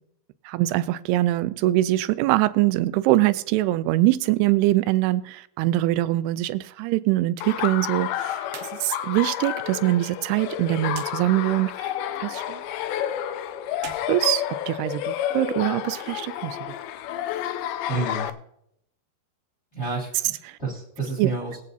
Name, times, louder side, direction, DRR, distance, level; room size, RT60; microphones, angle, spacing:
voice 1, 0.5-8.5 8.8-11.9 12.2-12.6 14.1-16.7 20.5-20.6 21.2-21.3, right 16 dB, 90° right, 2.6 m, -23 dB
Laughter, 7.4-18.3, left 11 dB, 80° left, 2.3 m, -30 dB
sound 1, 8.4-8.8 9.1-9.2 10.9-11.1 13.7-15.0, right 9 dB, 75° right, 2.5 m, -42 dB
voice 2, 17.9-18.3 19.7-21.6, right 3 dB, 20° left, 2.2 m, -30 dB
22.0 x 8.2 x 2.8 m
omnidirectional pair, 4.6 m